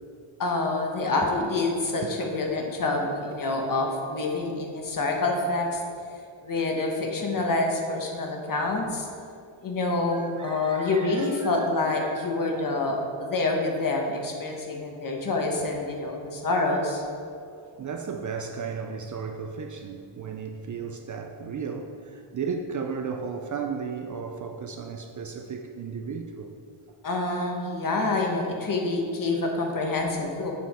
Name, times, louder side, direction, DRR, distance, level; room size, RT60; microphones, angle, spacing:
voice 1, 0.4-5.8 6.4-9.1 9.6-17.0 27.0-30.5, left 2 dB, 40° left, 1.1 m, -27 dB
voice 2, 10.1-12.4 17.5-26.5 30.0-30.1, right 5 dB, 40° right, 0.4 m, -35 dB
7.6 x 5.7 x 4.2 m
cardioid pair, 115°, 50 cm